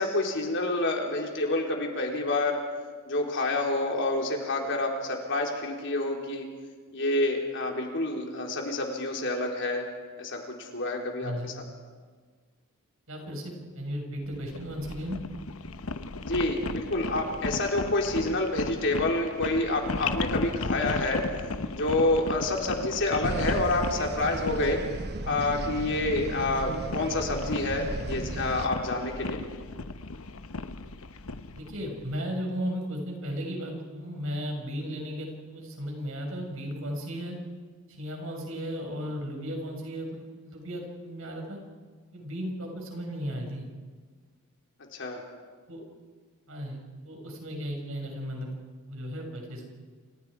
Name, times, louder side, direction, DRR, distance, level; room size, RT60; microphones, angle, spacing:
voice 1, 0.0-2.6 3.1-6.5 6.9-9.8 10.2-11.5 16.2-21.2 21.7-24.8 25.2-29.4 44.9-45.2, left 2 dB, 55° left, 1 dB, 4.0 m, -28 dB
voice 2, 13.1-15.2 31.5-37.4 37.9-41.6 42.1-43.6 45.7-45.8 46.5-48.5 48.9-49.7, equal, 65° right, 1 dB, 6.1 m, -35 dB
sound 1, 14.3-32.2, left 3 dB, 75° left, 1.0 m, -36 dB
sound 2, 23.2-28.7, right 2 dB, 50° right, 1.0 m, -35 dB
28.5 x 27.0 x 5.0 m, 1.5 s
head